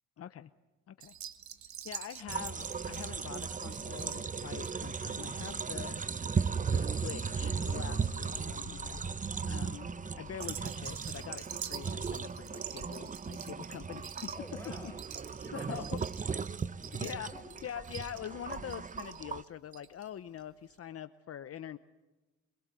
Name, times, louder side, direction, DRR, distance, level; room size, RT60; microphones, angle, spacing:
voice 1, 0.2-0.5 0.9-1.1 1.8-6.0 6.7-9.0 9.5-9.9 10.1-14.3 14.8-14.9 15.5-16.0 16.9-17.3 17.6-21.8, left 10 dB, 50° left, 12 dB, 0.9 m, -44 dB
sound 1, 1.0-7.8 8.1-8.6 9.1-9.4 10.3-20.1 20.4-20.5 20.7-20.8, right 9 dB, 65° right, 1.7 m, -46 dB
sound 2, 2.3-19.4, right 5 dB, 25° right, 0.8 m, -37 dB
sound 3, 3.7-11.2, left 12 dB, 80° left, 1.2 m, -53 dB
voice 2, 14.3-16.0 16.7-17.5, left 1 dB, 10° left, 4 dB, 4.9 m, -50 dB
25.5 x 22.5 x 8.2 m, 1.1 s
cardioid pair, 90°, 30 cm